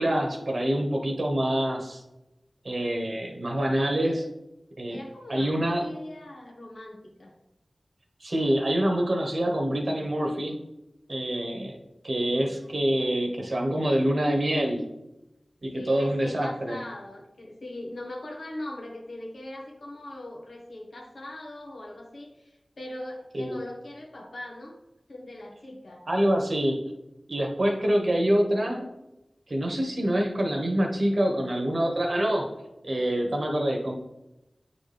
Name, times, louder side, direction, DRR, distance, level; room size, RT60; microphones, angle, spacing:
voice 1, 0.0-2.0 2.6-4.2 4.8-5.0 5.3-5.9 8.2-10.6 11.1-11.8 12.0-14.8 15.6-16.8 23.3-23.6 26.1-26.8 27.3-28.9 29.5-32.5 32.8-33.9, right 1 dB, 60° right, 1 dB, 1.2 m, -26 dB
voice 2, 4.9-7.3 12.4-13.1 15.7-24.8 25.1-26.0, left 1 dB, 80° left, -1 dB, 1.5 m, -41 dB
8.5 x 4.2 x 3.4 m, 0.94 s
wide cardioid pair, 55°, 0 cm